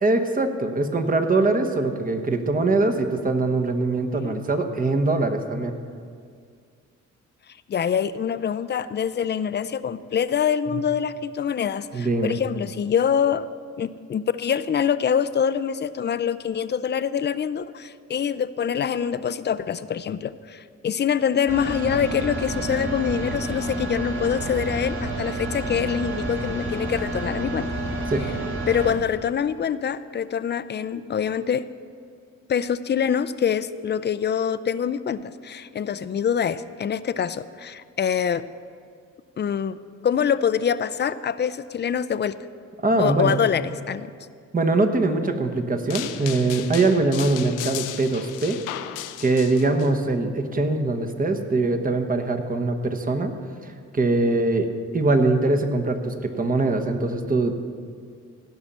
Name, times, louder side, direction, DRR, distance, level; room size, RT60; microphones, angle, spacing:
voice 1, 0.0-5.7 10.7-10.8 11.9-12.4 28.1-28.3 42.8-43.4 44.5-48.6 49.2-53.3 53.6-57.6, right 2 dB, 30° right, 7 dB, 1.1 m, -22 dB
voice 2, 7.7-13.5 13.8-27.7 28.7-31.7 32.5-38.5 39.4-39.8 40.0-42.4 43.0-44.1, left 8 dB, 35° left, 14 dB, 0.5 m, -25 dB
sound 1, 21.5-28.9, right 1 dB, 50° right, 3.9 m, -29 dB
sound 2, 45.9-49.9, left 13 dB, 85° left, 0.6 m, -35 dB
16.5 x 5.6 x 7.4 m, 2.2 s
cardioid pair, 90°, 30 cm